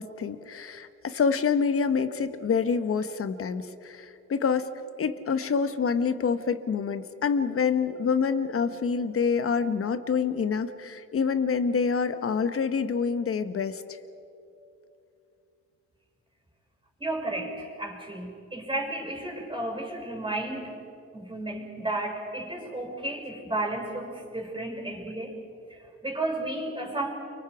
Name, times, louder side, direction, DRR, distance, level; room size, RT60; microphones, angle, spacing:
voice 1, 0.0-4.7 5.0-13.8, left 6 dB, 45° left, 11 dB, 1.4 m, -27 dB
voice 2, 17.0-20.8 21.1-25.4 25.7-27.1, right 2 dB, 15° right, 1 dB, 6.1 m, -33 dB
30.0 x 24.5 x 5.0 m, 2.7 s
cardioid pair, 90°, 30 cm